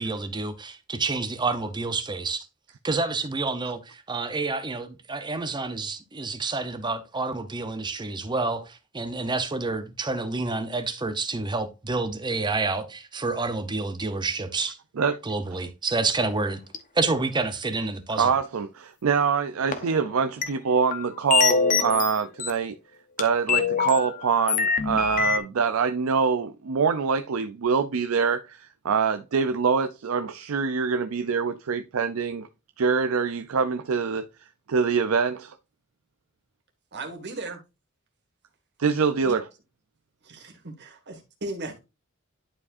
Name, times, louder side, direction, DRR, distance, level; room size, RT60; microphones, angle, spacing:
voice 1, 0.0-2.5 2.8-14.8 15.2-16.6 16.9-18.3, right 3 dB, 20° right, 0.7 m, -28 dB
sound 1, 16.7-16.8 19.7-20.5 20.9-22.5 23.2-25.4, left 6 dB, 40° left, 1.0 m, -24 dB
voice 2, 18.2-22.7 23.2-32.5 32.8-34.3 34.7-35.6 38.8-39.4, right 5 dB, 75° right, 0.5 m, -24 dB
voice 3, 36.9-37.6 39.3-39.4 40.2-41.8, right 2 dB, 55° right, 1.8 m, -36 dB
11.0 x 4.8 x 2.5 m
head